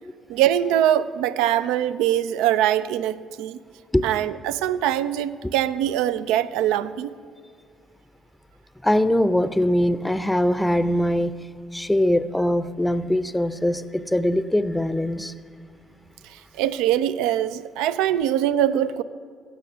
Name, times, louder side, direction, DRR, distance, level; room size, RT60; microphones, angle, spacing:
voice 1, 0.3-3.6 4.0-7.1 16.2-19.0, right 11 dB, 80° right, 14 dB, 0.4 m, -23 dB
voice 2, 8.8-15.3, left 1 dB, 5° left, 13 dB, 0.5 m, -22 dB
16.5 x 6.3 x 6.0 m, 2.2 s
supercardioid pair, 65°, 0 cm